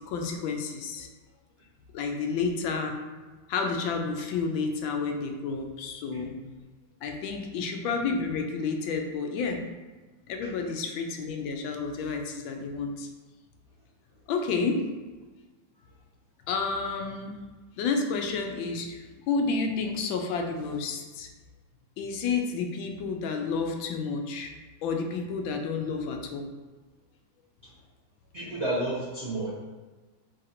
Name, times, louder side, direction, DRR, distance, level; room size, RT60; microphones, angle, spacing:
voice 1, 0.1-1.1 1.9-3.0 3.5-6.5 7.0-9.6 10.3-13.1 14.3-14.8 16.5-17.3 17.8-21.3 22.0-24.5 24.8-26.5, left 4 dB, 85° left, 3 dB, 1.3 m, -30 dB
voice 2, 28.3-29.6, right 1 dB, 45° right, -8 dB, 0.9 m, -31 dB
3.9 x 2.6 x 4.2 m, 1.3 s
omnidirectional pair, 2.1 m